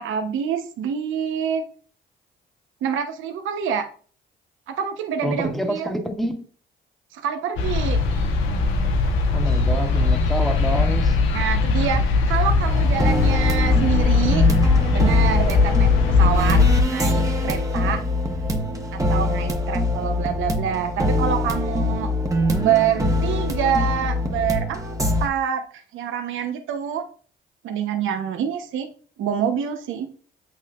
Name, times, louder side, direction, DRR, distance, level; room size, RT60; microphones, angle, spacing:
voice 1, 0.0-1.6 2.8-3.9 4.7-5.9 7.1-8.0 11.3-14.4 14.9-18.0 18.9-22.1 22.6-27.0 27.6-28.9 29.2-30.1, right 8 dB, 80° right, 0.9 m, -26 dB
voice 2, 5.2-6.4 9.3-11.2, equal, ahead, 1.3 m, -27 dB
sound 1, 7.6-16.8, left 4 dB, 85° left, 1.1 m, -19 dB
sound 2, 12.8-25.3, left 1 dB, 15° right, 1.1 m, -23 dB
8.2 x 6.3 x 2.4 m
cardioid pair, 90°, 20 cm